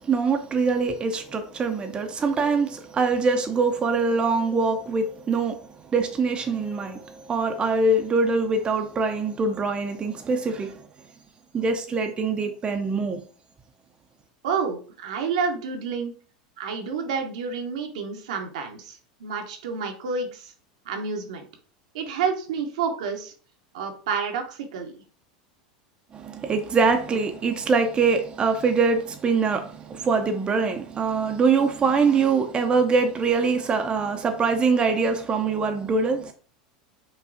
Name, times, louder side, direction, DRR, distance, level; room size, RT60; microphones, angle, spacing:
voice 1, 0.0-10.9 11.5-13.2 26.1-36.3, right 4 dB, 25° right, 0.5 m, -23 dB
voice 2, 14.4-16.1 16.6-20.5 20.8-21.5 21.9-23.3 23.7-24.9, right 5 dB, 70° right, 0.8 m, -29 dB
4.9 x 2.3 x 2.5 m
hypercardioid pair, 90°, 4 cm